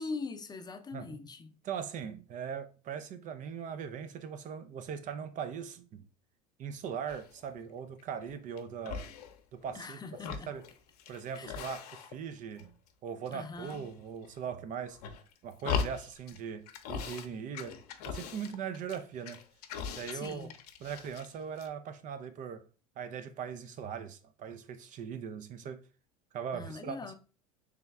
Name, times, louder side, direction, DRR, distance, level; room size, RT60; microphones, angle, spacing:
voice 1, 0.0-1.5 9.7-10.5 11.3-11.6 13.3-13.9 20.1-20.5 26.5-27.1, left 4 dB, 20° left, 0.6 m, -42 dB
voice 2, 1.6-6.1 6.6-9.1 9.5-10.0 10.3-10.6 11.1-12.7 13.0-15.0 15.4-17.8 18.0-19.4 19.8-20.5 20.8-22.6 23.0-25.8 26.3-27.1, right 7 dB, 40° right, 0.5 m, -40 dB
sound 1, 7.1-7.5 8.0-8.6 8.8-9.8 10.1-12.3 12.6-13.3 13.6-14.4 14.9-16.4 16.7-17.3 17.5-21.3 21.6-21.7, left 7 dB, 75° left, 0.7 m, -40 dB
3.4 x 3.1 x 3.4 m
hypercardioid pair, 95°, 20 cm